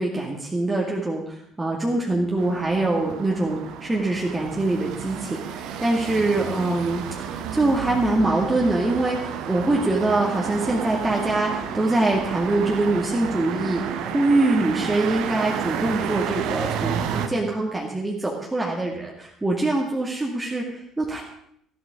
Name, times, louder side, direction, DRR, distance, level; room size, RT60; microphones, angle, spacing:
voice 1, 0.0-21.2, right 2 dB, 15° right, -2 dB, 2.2 m, -24 dB
sound 1, 2.4-17.3, right 8 dB, 55° right, 1.2 m, -31 dB
15.0 x 12.0 x 5.0 m, 0.68 s
figure-of-eight pair, 55°, 0 cm